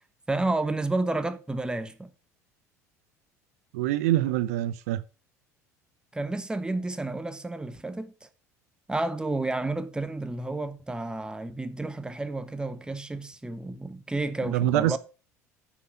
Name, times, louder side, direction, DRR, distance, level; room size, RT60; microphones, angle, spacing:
voice 1, 0.3-2.1 6.1-8.3 8.9-15.0, right 2 dB, 10° right, 1.1 m, -31 dB
voice 2, 3.7-5.0 14.5-15.0, right 14 dB, 70° right, 0.5 m, -25 dB
9.7 x 5.8 x 5.9 m
hypercardioid pair, 65°, 9 cm